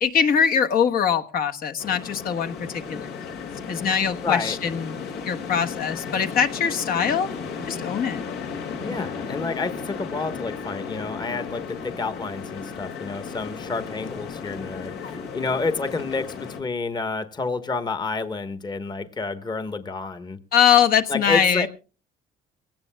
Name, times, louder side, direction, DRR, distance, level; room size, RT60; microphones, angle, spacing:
voice 1, 0.0-2.5 2.9-3.3 3.7-7.3 7.6-8.2 20.5-21.7, left 7 dB, 60° left, 7 dB, 1.3 m, -22 dB
sound 1, 1.8-16.6, left 6 dB, 80° left, 2.3 m, -35 dB
voice 2, 4.2-4.6 8.8-20.4 21.1-21.7, left 4 dB, 25° left, 10 dB, 1.2 m, -29 dB
23.0 x 17.5 x 2.2 m, 0.34 s
cardioid pair, 110°, 17 cm